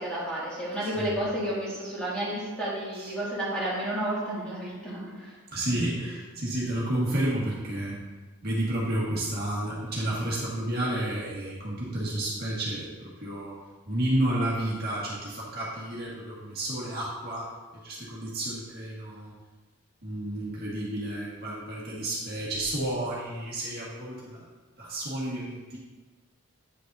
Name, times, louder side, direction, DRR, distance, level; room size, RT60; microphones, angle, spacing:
voice 1, 0.0-5.4 5.7-5.8, right 1 dB, 5° left, -9 dB, 2.2 m, -31 dB
voice 2, 5.5-8.0 8.4-13.5 13.9-17.5 17.8-19.3 20.0-24.4 24.8-25.8, right 1 dB, 45° right, -6 dB, 1.6 m, -31 dB
9.1 x 6.6 x 2.7 m, 1.3 s
head